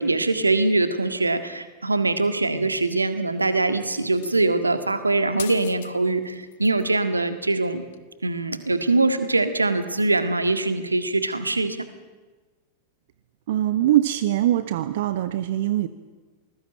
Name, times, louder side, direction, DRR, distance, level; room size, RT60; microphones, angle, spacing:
voice 1, 0.0-7.8 8.2-11.9, right 2 dB, 80° right, 10 dB, 1.8 m, -23 dB
sound 1, 4.1-4.6 5.4-5.9 6.2-6.9 7.9-8.0, left 12 dB, 60° left, 1.1 m, -40 dB
voice 2, 13.5-15.9, right 13 dB, 55° right, 13 dB, 1.0 m, -22 dB
27.0 x 19.5 x 8.9 m, 1.3 s
figure-of-eight pair, 90°, 0 cm